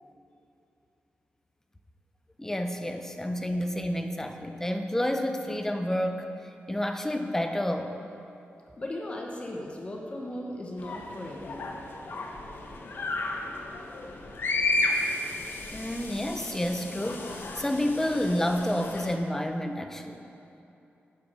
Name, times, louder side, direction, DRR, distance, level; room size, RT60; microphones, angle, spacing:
voice 1, 2.4-6.3 6.7-7.9 15.7-20.2, left 1 dB, 10° left, 6 dB, 0.5 m, -29 dB
voice 2, 8.8-11.8, left 1 dB, 25° left, -1 dB, 0.9 m, -37 dB
sound 1, 10.8-19.2, left 2 dB, 55° left, 0.7 m, -33 dB
8.9 x 5.0 x 6.5 m, 2.8 s
wide cardioid pair, 140°, 4 cm